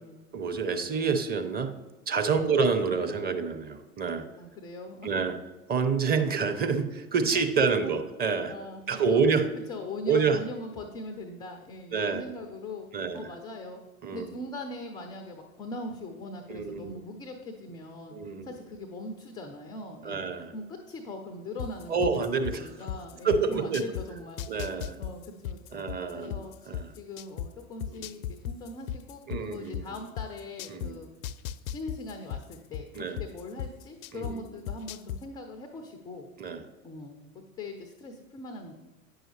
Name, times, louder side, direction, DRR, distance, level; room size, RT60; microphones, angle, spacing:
voice 1, 0.3-1.7 2.1-4.3 5.0-5.4 5.7-8.5 8.9-9.5 10.1-10.4 11.9-12.2 12.9-13.3 14.0-14.3 16.5-17.0 18.1-18.6 20.0-20.5 21.9-22.7 23.2-23.8 24.5-25.0 25.7-26.4 26.7-26.9 27.9-28.0 29.3-29.9 30.7-31.0 32.9-33.2 34.1-34.4 36.4-36.6, right 5 dB, 20° right, 8 dB, 0.7 m, -27 dB
voice 2, 4.4-5.1 7.3-7.9 8.5-8.8 9.1-9.3 9.7-13.8 14.1-20.2 20.5-22.2 22.5-26.7 27.0-31.1 31.6-36.3 36.8-38.7, left 2 dB, 10° left, 5 dB, 0.3 m, -41 dB
sound 1, 21.6-24.0 24.4-27.5 27.8-30.9 31.2-34.3 34.7-35.2, left 10 dB, 70° left, 0.5 m, -35 dB
9.0 x 6.2 x 3.3 m, 1.2 s
figure-of-eight pair, 80°, 44 cm